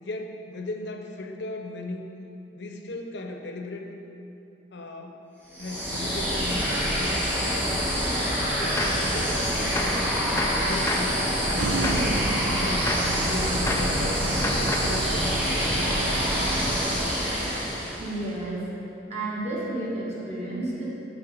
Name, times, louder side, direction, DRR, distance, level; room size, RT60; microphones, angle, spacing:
voice 1, 0.0-2.0 2.5-3.9 4.7-5.2 5.6-7.9 8.5-12.9 13.2-15.3, left 2 dB, 70° left, 4 dB, 0.7 m, -37 dB
sound 1, 5.5-18.2, equal, 10° right, 1.6 m, -26 dB
Gunshot gunfire, 8.8-9.1 9.8-10.1 10.4-11.2 11.8-12.1 12.9-13.2 13.7-14.0 14.4-15.0, left 2 dB, 15° left, 0.4 m, -30 dB
sound 2, 11.6-16.8, right 3 dB, 80° right, 0.5 m, -31 dB
voice 2, 18.0-18.7 19.1-20.8, right 2 dB, 40° right, -7 dB, 1.8 m, -31 dB
7.1 x 6.6 x 4.4 m, 2.9 s
head